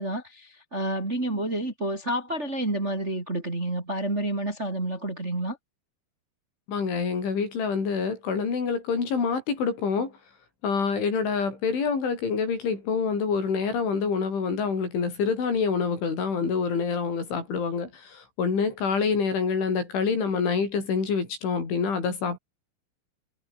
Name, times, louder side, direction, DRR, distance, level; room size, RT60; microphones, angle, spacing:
voice 1, 0.0-5.6, right 1 dB, 15° right, 2.8 m, -29 dB
voice 2, 6.7-10.1 10.6-22.4, left 5 dB, 80° left, 9.2 m, -26 dB
omnidirectional pair, 5.4 m